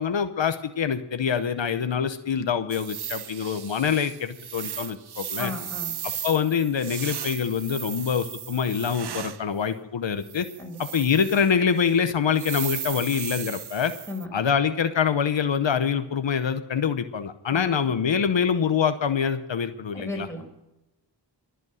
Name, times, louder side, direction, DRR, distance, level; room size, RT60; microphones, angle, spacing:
voice 1, 0.0-5.5 6.2-10.5 10.8-13.9 14.3-20.3, left 7 dB, 85° left, 10 dB, 0.9 m, -25 dB
sound 1, 2.7-9.5 10.2-11.5 11.8-11.9 12.3-14.3, right 9 dB, 60° right, 0.6 m, -36 dB
voice 2, 5.4-6.0 10.6-10.8 14.1-14.3 17.5-17.9 19.9-20.5, left 2 dB, 5° left, 1 dB, 5.0 m, -35 dB
22.5 x 8.3 x 6.3 m, 0.95 s
wide cardioid pair, 55°, 44 cm